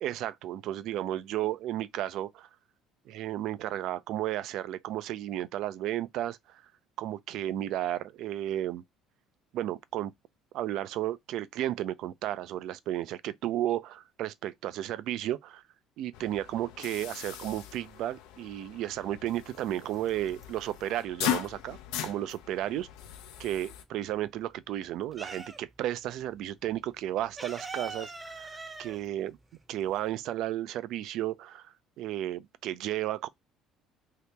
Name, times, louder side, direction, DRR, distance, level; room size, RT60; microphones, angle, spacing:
voice 1, 0.0-2.5 3.1-6.6 7.0-8.8 9.5-10.1 10.5-15.6 16.0-21.8 22.0-22.9 23.4-28.5 28.8-29.4 29.7-33.3, right 13 dB, 65° right, 0.4 m, -33 dB
sound 1, 16.1-23.8, left 12 dB, 85° left, 0.5 m, -39 dB
sound 2, 20.0-20.9 21.2-23.2 23.5-25.9 26.2-26.3 26.6-30.2, right 3 dB, 15° right, 0.7 m, -43 dB
2.9 x 2.8 x 3.3 m
cardioid pair, 110°, 0 cm